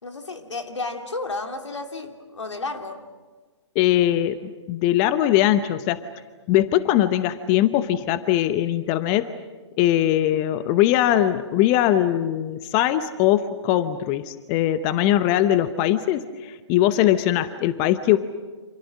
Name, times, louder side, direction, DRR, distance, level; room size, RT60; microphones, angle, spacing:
voice 1, 0.0-3.1, left 3 dB, 75° left, 5 dB, 2.9 m, -32 dB
voice 2, 3.7-6.0 6.5-9.3 9.8-18.2, left 13 dB, 25° left, 13 dB, 0.8 m, -21 dB
29.0 x 27.5 x 6.3 m, 1.4 s
figure-of-eight pair, 130°, 15 cm